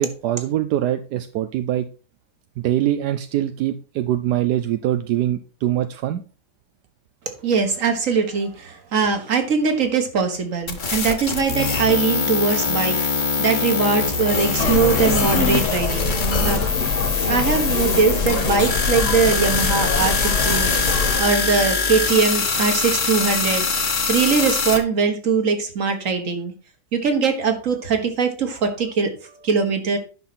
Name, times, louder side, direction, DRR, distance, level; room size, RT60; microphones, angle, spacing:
voice 1, 0.0-1.9 2.6-6.2, right 12 dB, 80° right, 10 dB, 1.2 m, -23 dB
voice 2, 7.4-16.2 16.4-16.6 16.9-26.5 26.9-30.0, right 5 dB, 50° right, 6 dB, 1.8 m, -21 dB
sound 1, 10.7-24.8, left 4 dB, 35° left, 1.1 m, -23 dB
sound 2, 14.6-21.2, left 4 dB, 50° left, 1.7 m, -23 dB
11.0 x 5.8 x 4.2 m, 0.36 s
omnidirectional pair, 1.8 m